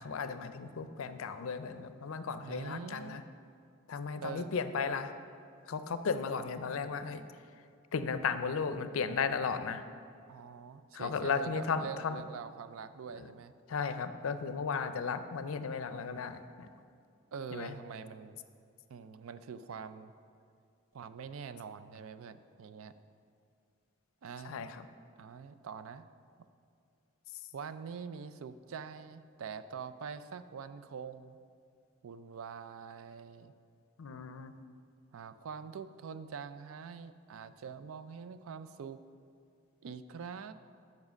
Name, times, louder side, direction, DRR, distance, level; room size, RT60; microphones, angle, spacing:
voice 1, 0.0-3.2 3.9-5.1 5.7-7.2 7.9-9.8 10.9-12.2 13.2-13.3 13.7-16.7 17.5-17.7 24.4-24.9 34.0-34.5, left 5 dB, 85° left, 11 dB, 0.5 m, -35 dB
voice 2, 2.4-3.2 4.2-4.5 10.3-13.5 17.3-18.4 18.9-20.1 20.9-23.0 24.2-24.6 25.2-26.0 27.5-31.4 32.0-33.5 35.1-39.0 39.8-40.5, right 6 dB, 85° right, 12 dB, 0.4 m, -44 dB
7.2 x 5.4 x 6.3 m, 2.3 s
head